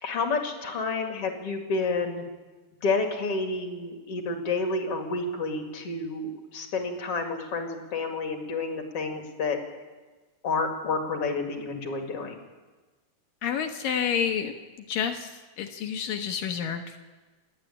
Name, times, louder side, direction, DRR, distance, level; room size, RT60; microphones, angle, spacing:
voice 1, 0.0-2.2 2.8-9.6 10.4-12.4, left 3 dB, 45° left, 3 dB, 2.5 m, -29 dB
voice 2, 13.4-14.5 14.9-15.3 15.6-17.0, left 8 dB, 70° left, 5 dB, 2.4 m, -29 dB
27.0 x 9.7 x 10.0 m, 1.3 s
omnidirectional pair, 4.8 m